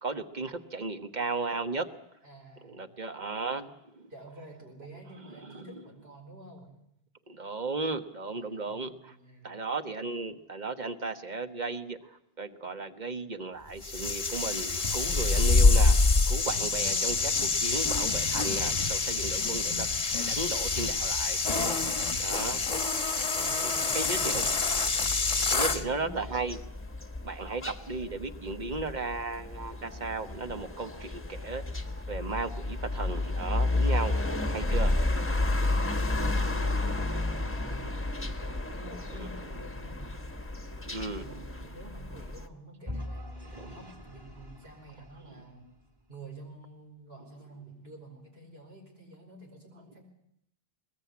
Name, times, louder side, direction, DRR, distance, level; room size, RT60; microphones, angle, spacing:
voice 1, 0.0-1.9 2.6-4.1 5.4-5.7 7.3-9.2 9.4-16.0 16.3-19.9 20.1-21.4 22.2-22.6 23.6-24.4 25.5-26.6 27.2-31.6 32.1-34.2 34.5-34.9 37.0-37.4 39.2-39.3 40.8-41.3 43.4-43.8, right 3 dB, 45° right, 8 dB, 1.4 m, -35 dB
voice 2, 2.2-2.9 4.1-6.7 8.2-9.5 15.0-15.3 19.0-19.5 21.7-22.5 23.4-24.5 25.6-26.2 35.4-37.9 38.4-40.1 40.7-45.7 46.1-50.0, right 2 dB, 80° right, 2 dB, 5.3 m, -49 dB
sound 1, 13.8-25.8, left 3 dB, 40° left, 1.1 m, -26 dB
sound 2, 25.5-42.5, left 2 dB, 15° left, 1.2 m, -32 dB
Vehicle / Engine, 42.9-45.9, left 1 dB, 25° right, 2.8 m, -43 dB
21.0 x 20.5 x 8.5 m, 0.76 s
omnidirectional pair, 1.0 m